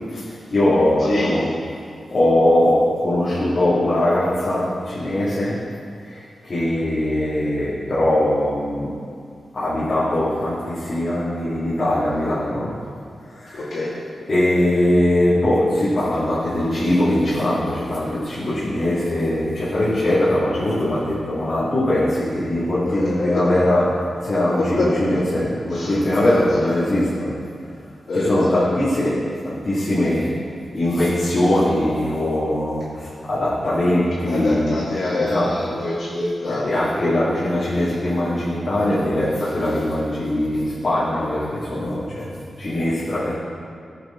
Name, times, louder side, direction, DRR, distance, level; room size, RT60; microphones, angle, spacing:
voice 1, 0.1-1.5 2.1-5.7 6.0-8.9 9.5-12.8 13.3-13.8 14.3-27.4 28.1-30.3 30.7-34.8 35.1-35.5 36.5-43.3, left 1 dB, 40° left, -11 dB, 2.2 m, -21 dB
voice 2, 1.0-1.5 13.5-13.9 22.9-23.4 24.8-24.9 25.7-26.7 28.1-28.7 34.2-36.8 37.3-37.4, left 2 dB, 65° left, -10 dB, 2.2 m, -25 dB
15.0 x 6.9 x 3.8 m, 2.4 s
wide cardioid pair, 155°, 0 cm